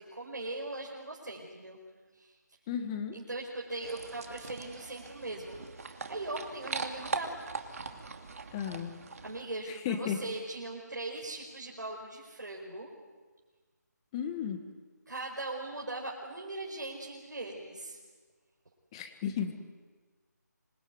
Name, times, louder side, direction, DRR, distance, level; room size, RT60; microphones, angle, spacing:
voice 1, 0.0-1.8 2.1-2.4 3.1-5.6 6.1-7.3 9.2-12.9 15.1-18.0, right 2 dB, 80° right, -1 dB, 5.1 m, -39 dB
voice 2, 2.7-3.2 8.5-8.9 9.7-10.2 14.1-14.6 18.9-19.5, left 8 dB, 20° left, 7 dB, 1.9 m, -34 dB
sound 1, 3.8-9.4, right 4 dB, 55° right, 2.7 m, -41 dB
26.5 x 21.5 x 9.5 m, 1.4 s
figure-of-eight pair, 160°, 10 cm